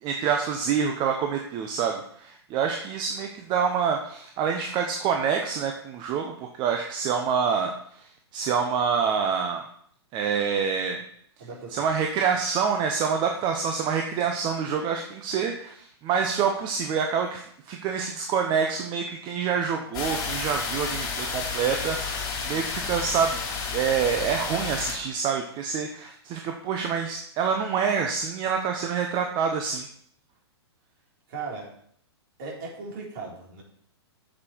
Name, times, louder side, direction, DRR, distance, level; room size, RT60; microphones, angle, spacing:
voice 1, 0.0-9.6 10.1-11.0 11.7-23.4 23.7-29.9, right 6 dB, 30° right, 3 dB, 1.1 m, -27 dB
voice 2, 11.4-11.9 31.3-31.7 32.4-33.6, right 4 dB, 50° right, -2 dB, 4.1 m, -37 dB
sound 1, 19.9-25.0, left 5 dB, 30° left, 3.7 m, -31 dB
8.4 x 7.6 x 4.7 m, 0.65 s
hypercardioid pair, 120°, 14 cm